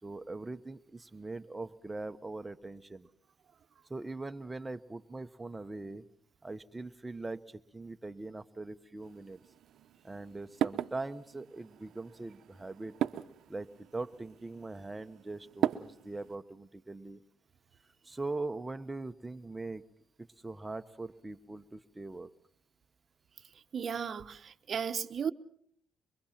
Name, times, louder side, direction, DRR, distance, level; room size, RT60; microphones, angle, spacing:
voice 1, 0.0-3.1 3.9-6.0 6.4-9.4 10.0-12.9 13.5-17.2 18.0-19.8 20.2-22.3, right 2 dB, 15° right, 1.1 m, -41 dB
sound 1, 9.0-16.4, right 11 dB, 75° right, 0.9 m, -38 dB
voice 2, 23.7-25.3, right 7 dB, 50° right, 1.1 m, -35 dB
24.0 x 23.5 x 5.9 m
cardioid pair, 90°, 0 cm